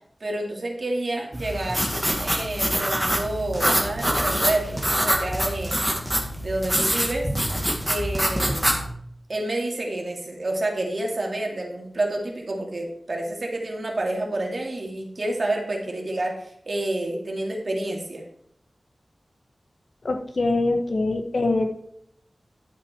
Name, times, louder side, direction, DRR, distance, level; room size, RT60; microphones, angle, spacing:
voice 1, 0.2-1.8 2.2-5.8 6.4-7.3 7.9-8.7 9.3-18.2, right 1 dB, 55° right, 0 dB, 2.7 m, -29 dB
sound 1, 1.3-8.9, equal, 5° right, 1.9 m, -25 dB
voice 2, 20.0-21.7, left 2 dB, 65° left, 5 dB, 1.4 m, -23 dB
12.0 x 7.3 x 4.6 m, 0.69 s
wide cardioid pair, 75°, 0 cm